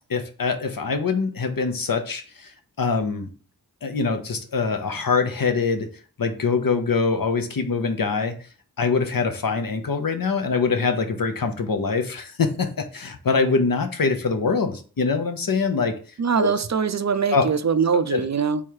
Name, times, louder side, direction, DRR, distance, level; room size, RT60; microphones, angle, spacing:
voice 1, 0.1-3.3 3.8-8.4 8.8-16.0 16.4-16.5 17.3-17.4 18.1-18.2, left 4 dB, 65° left, 6 dB, 0.7 m, -24 dB
voice 2, 16.2-18.6, right 6 dB, 50° right, 11 dB, 0.4 m, -22 dB
3.5 x 3.1 x 4.6 m, 0.40 s
wide cardioid pair, 50°, 37 cm